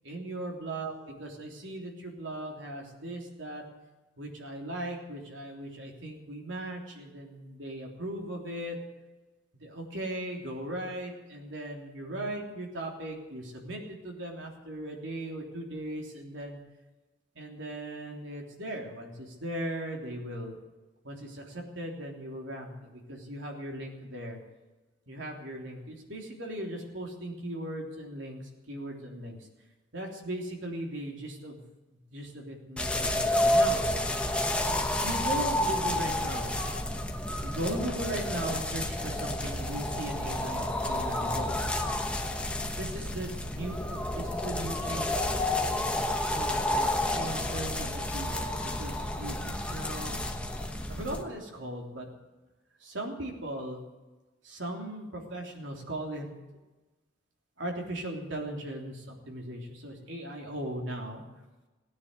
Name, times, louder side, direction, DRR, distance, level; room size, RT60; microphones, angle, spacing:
voice 1, 0.1-3.6 4.2-8.8 9.6-16.6 17.4-20.6 21.1-21.4 21.8-24.4 25.1-28.4 28.7-29.4 29.9-31.6 32.1-33.8 35.0-36.5 37.4-41.5 42.8-43.7 44.1-45.4 46.3-50.2 50.9-52.1 52.8-53.8 54.5-56.3 57.6-61.2, right 1 dB, 75° right, 1 dB, 3.4 m, -38 dB
sound 1, 32.8-51.2, left 1 dB, 5° left, 1.1 m, -30 dB
17.5 x 9.7 x 8.0 m, 1.2 s
head